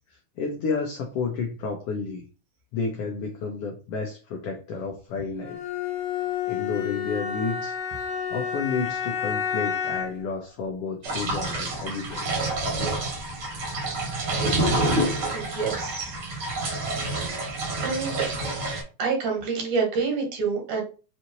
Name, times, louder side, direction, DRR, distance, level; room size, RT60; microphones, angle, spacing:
voice 1, 0.4-2.2 2.7-5.6 6.4-7.8 8.3-12.5, left 4 dB, 80° left, 2 dB, 1.3 m, -31 dB
Bowed string instrument, 5.4-10.3, left 8 dB, 55° left, 1.8 m, -30 dB
sound 1, 11.0-18.8, right 2 dB, 50° right, 1.4 m, -28 dB
voice 2, 15.3-16.2 16.6-16.8 17.8-18.3 19.0-20.8, right 5 dB, 75° right, 1 dB, 2.8 m, -27 dB
5.4 x 2.7 x 3.0 m, 0.35 s
omnidirectional pair, 3.5 m